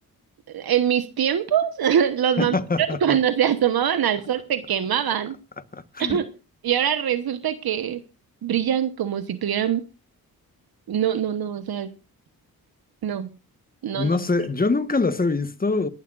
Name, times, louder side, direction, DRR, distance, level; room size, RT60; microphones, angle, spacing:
voice 1, 0.5-5.4 6.0-6.3 6.6-8.0 8.4-9.8 10.9-11.9 13.0-13.3 13.8-14.1, right 9 dB, 70° right, 1.2 m, -23 dB
voice 2, 2.4-3.2 5.7-6.2 13.9-15.9, left 3 dB, 25° left, 1.3 m, -24 dB
23.5 x 12.0 x 2.5 m
cardioid pair, 70°, 38 cm